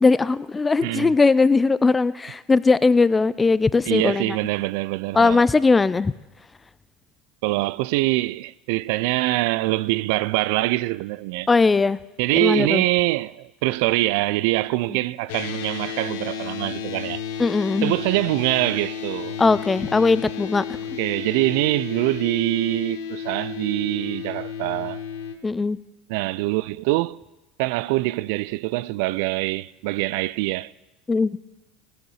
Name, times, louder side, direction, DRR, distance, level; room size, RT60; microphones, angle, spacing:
voice 1, 0.0-4.4 5.1-6.1 11.5-12.0 12.3-12.8 17.4-17.9 19.4-20.8 25.4-25.8 31.1-31.4, left 4 dB, 20° left, 0.4 m, -19 dB
voice 2, 0.8-1.1 3.9-5.4 7.4-11.5 12.2-17.2 17.8-19.4 21.0-25.0 26.1-27.2 27.6-30.7, right 19 dB, 70° right, 0.3 m, -24 dB
sound 1, 15.3-25.4, left 7 dB, 70° left, 1.0 m, -33 dB
17.0 x 7.6 x 5.6 m
hypercardioid pair, 80°, 0 cm